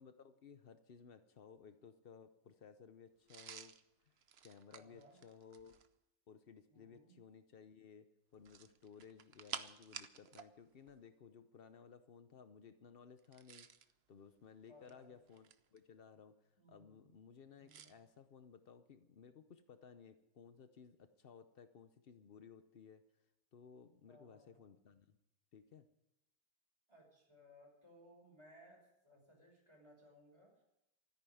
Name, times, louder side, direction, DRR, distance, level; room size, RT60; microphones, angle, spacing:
voice 1, 0.0-3.8 4.0-4.1 4.4-5.8 6.3-13.7 14.1-23.0 23.5-25.2 25.5-25.9, left 6 dB, 90° left, 10 dB, 0.5 m, -59 dB
sound 1, 3.3-5.9 8.4-10.5 10.8-11.0 13.2-13.9 14.7-15.8 17.7-17.9, right 8 dB, 85° right, 0.5 m, -52 dB
voice 2, 4.7-5.2 6.7-7.2 14.7-15.2 16.6-17.1 17.6-18.0 24.1-24.6 26.9-30.6, equal, 15° right, -1 dB, 5.6 m, -63 dB
13.5 x 10.5 x 9.3 m, 0.89 s
omnidirectional pair, 2.1 m